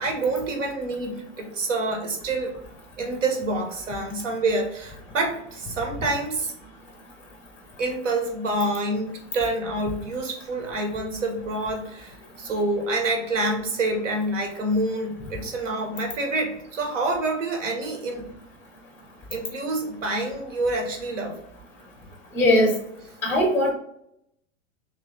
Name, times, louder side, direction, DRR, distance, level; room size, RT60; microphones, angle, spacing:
voice 1, 0.0-2.6 3.0-6.5 7.8-18.3 19.3-21.4, right 2 dB, 80° right, 3 dB, 1.1 m, -27 dB
voice 2, 22.3-22.7 23.2-23.7, left 1 dB, 5° left, 2 dB, 0.5 m, -19 dB
3.0 x 2.8 x 3.6 m, 0.75 s
hypercardioid pair, 95°, 37 cm